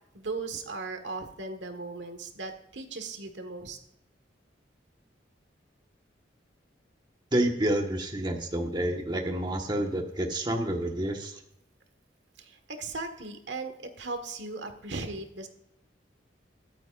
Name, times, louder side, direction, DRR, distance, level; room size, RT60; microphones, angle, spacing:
voice 1, 0.1-3.8 12.4-13.7 14.0-15.5, right 3 dB, 80° right, 7 dB, 1.6 m, -37 dB
voice 2, 7.3-11.4, right 1 dB, 25° right, 2 dB, 1.5 m, -29 dB
23.0 x 9.3 x 2.5 m, 0.77 s
head